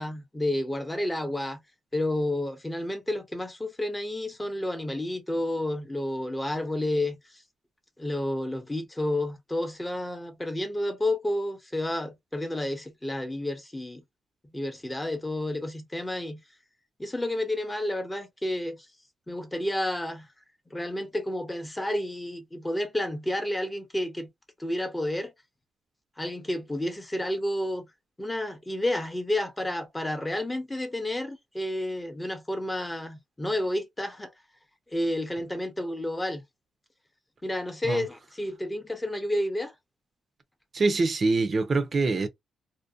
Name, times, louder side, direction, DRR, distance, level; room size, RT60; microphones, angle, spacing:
voice 1, 0.0-1.6 1.9-7.2 8.0-14.0 14.5-16.4 17.0-18.8 19.3-20.3 20.7-24.3 24.6-25.3 26.2-27.9 28.2-34.3 34.9-36.4 37.4-39.7, left 1 dB, 15° left, 0.6 m, -30 dB
voice 2, 40.7-42.3, right 3 dB, 40° right, 0.5 m, -24 dB
2.6 x 2.1 x 2.4 m
cardioid pair, 90°, 0 cm